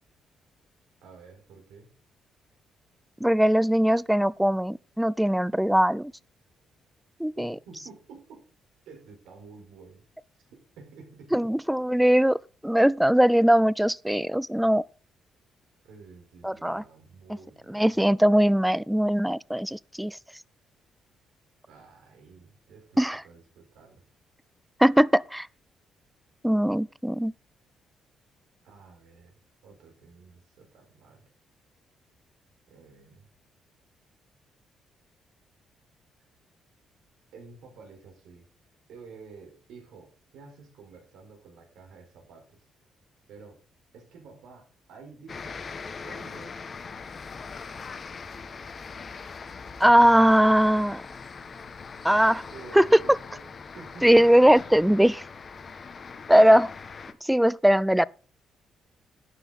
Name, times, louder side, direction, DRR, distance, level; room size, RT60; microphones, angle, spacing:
voice 1, 1.0-1.9 7.4-8.5 8.9-10.0 10.5-11.6 11.9-12.1 15.8-17.9 21.7-24.0 28.6-29.3 29.6-31.2 32.7-33.3 37.3-38.5 38.9-42.7 43.3-43.6 43.9-45.6 46.0-46.7 52.5-54.5 55.7-56.0, right 4 dB, 85° right, 4.5 m, -50 dB
voice 2, 3.2-6.1 7.2-7.5 11.3-12.3 12.6-14.8 16.4-16.8 17.7-20.2 23.0-23.2 24.8-25.5 26.4-27.3 49.8-51.0 52.0-52.5 52.7-53.0 54.0-55.2 56.3-56.7 57.2-58.1, equal, 5° right, 0.4 m, -20 dB
sound 1, 45.3-57.1, left 5 dB, 40° left, 1.2 m, -41 dB
11.5 x 9.9 x 4.1 m
cardioid pair, 90°, 0 cm